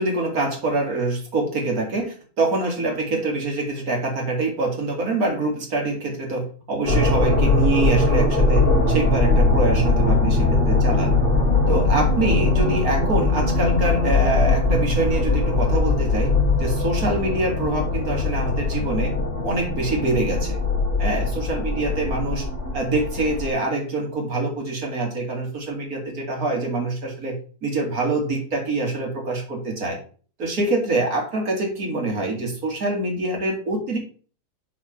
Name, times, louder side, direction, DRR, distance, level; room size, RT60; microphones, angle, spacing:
voice 1, 0.0-11.1 11.7-16.3 16.6-19.1 19.4-20.6 21.0-22.4 22.7-27.3 27.6-30.0 30.4-34.0, right 2 dB, 50° right, 1 dB, 2.7 m, -25 dB
sound 1, 6.9-23.5, left 3 dB, 30° left, 2.7 m, -21 dB
7.5 x 4.1 x 5.8 m, 0.40 s
omnidirectional pair, 2.1 m